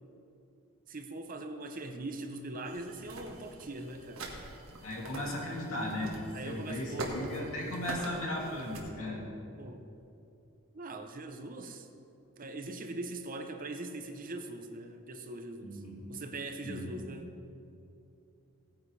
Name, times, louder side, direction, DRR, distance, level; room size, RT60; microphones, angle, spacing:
voice 1, 0.9-4.4 6.3-7.2 9.6-9.9 10.7-11.9 12.4-15.8 16.1-17.4, right 2 dB, 40° right, 6 dB, 0.8 m, -41 dB
sound 1, 2.6-8.8, right 2 dB, 70° right, 1.6 m, -44 dB
voice 2, 4.8-9.3 15.6-16.0 16.6-17.1, left 1 dB, 75° left, -3 dB, 2.7 m, -37 dB
17.5 x 9.6 x 3.3 m, 2.7 s
head